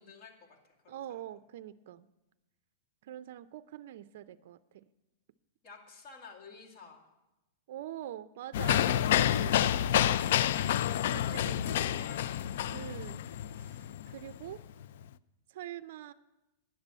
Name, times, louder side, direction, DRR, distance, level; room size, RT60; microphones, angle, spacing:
voice 1, 0.0-1.2 5.6-7.1 10.8-12.3, left 4 dB, 35° left, 1 dB, 2.3 m, -53 dB
voice 2, 0.9-2.1 3.0-4.9 7.7-9.7 10.9-12.0 12.7-13.2 13.6-14.6 15.5-16.1, right 12 dB, 60° right, 14 dB, 0.4 m, -45 dB
sound 1, 8.5-15.0, left 11 dB, 60° left, 0.3 m, -29 dB
10.5 x 6.8 x 9.1 m, 0.98 s
supercardioid pair, 160°, 0 cm